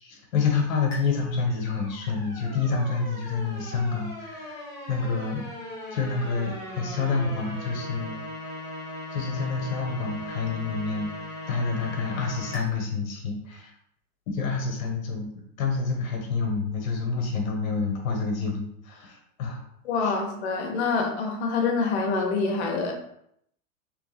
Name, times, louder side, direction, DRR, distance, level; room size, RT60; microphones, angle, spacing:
voice 1, 0.0-5.4 5.9-8.2 9.1-13.7 14.3-15.3 15.6-19.6 20.0-20.2, left 4 dB, 75° left, 1 dB, 1.4 m, -28 dB
sound 1, 0.9-12.6, left 1 dB, 10° left, 0.4 m, -39 dB
voice 2, 19.8-22.9, left 4 dB, 55° left, 2 dB, 1.1 m, -26 dB
3.4 x 3.4 x 3.4 m, 0.72 s
supercardioid pair, 165°, 41 cm